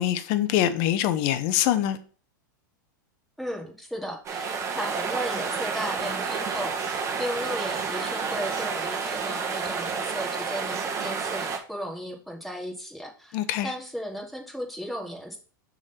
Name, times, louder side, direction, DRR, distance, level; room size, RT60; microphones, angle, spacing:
voice 1, 0.0-2.0 13.3-13.7, left 11 dB, 50° left, 0.8 m, -24 dB
voice 2, 3.4-15.4, equal, ahead, 2.2 m, -35 dB
sound 1, 4.2-11.6, right 5 dB, 30° right, 1.6 m, -30 dB
6.2 x 3.9 x 5.8 m
hypercardioid pair, 120°, 11 cm